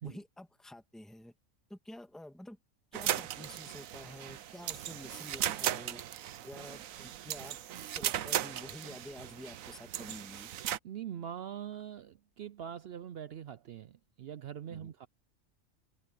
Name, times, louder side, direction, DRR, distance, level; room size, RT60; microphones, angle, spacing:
voice 1, 0.0-1.3 1.7-2.6 2.9-6.0 6.4-7.6 7.9-10.5 14.7-14.9, left 1 dB, ahead, 2.2 m, -49 dB
sound 1, 2.9-10.8, right 11 dB, 90° right, 1.1 m, -37 dB
voice 2, 10.8-15.1, right 9 dB, 65° right, 0.6 m, -43 dB
omnidirectional pair, 1.4 m